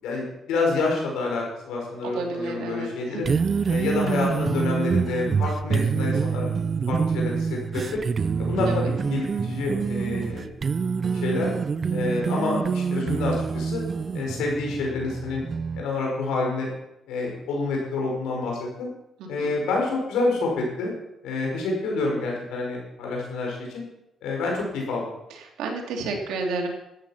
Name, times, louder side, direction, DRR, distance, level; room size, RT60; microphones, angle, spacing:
voice 1, 0.0-3.3 3.7-6.5 6.9-8.0 8.4-10.5 11.1-11.5 11.9-13.8 14.1-15.4 15.8-16.7 17.1-18.9 19.3-20.9 21.2-23.8 24.2-25.0, left 3 dB, 90° left, -1 dB, 5.2 m, -28 dB
voice 2, 2.0-3.2 8.7-8.9 19.2-19.5 25.6-26.7, right 3 dB, 85° right, 1 dB, 2.8 m, -31 dB
sound 1, 3.2-15.8, right 5 dB, 45° right, 0.6 m, -26 dB
13.5 x 9.0 x 5.8 m, 0.88 s
cardioid pair, 90°, 0 cm